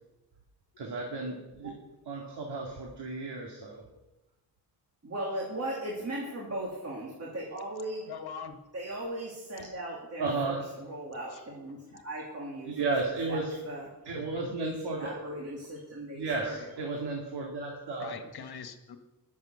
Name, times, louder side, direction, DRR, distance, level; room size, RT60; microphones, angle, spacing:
voice 1, 0.8-1.7 2.1-3.8 10.2-10.6 12.7-13.6 14.1-15.1 16.1-18.2, right 3 dB, 75° right, 0 dB, 2.3 m, -33 dB
voice 2, 5.0-8.1 8.7-12.9 13.3-13.9 14.6-16.7, right 1 dB, 35° right, -4 dB, 2.7 m, -38 dB
voice 3, 8.1-8.6 9.6-9.7 11.3-11.4 11.9-12.0 14.1-14.5 15.1-15.3 16.0-16.1 18.0-19.0, left 6 dB, 65° left, 7 dB, 1.5 m, -43 dB
19.5 x 7.3 x 6.4 m, 1.1 s
wide cardioid pair, 140°, 41 cm